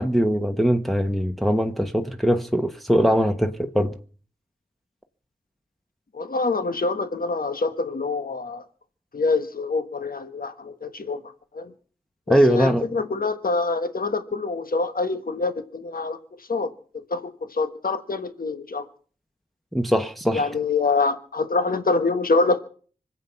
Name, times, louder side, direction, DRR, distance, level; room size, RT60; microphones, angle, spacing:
voice 1, 0.0-3.9 12.3-12.9 19.7-20.5, equal, ahead, 1.3 m, -21 dB
voice 2, 6.1-8.6 9.1-11.2 11.5-11.7 12.3-16.7 17.1-18.8 20.3-22.6, left 3 dB, 65° left, 1.4 m, -25 dB
25.0 x 8.5 x 5.9 m
wide cardioid pair, 55°, 16 cm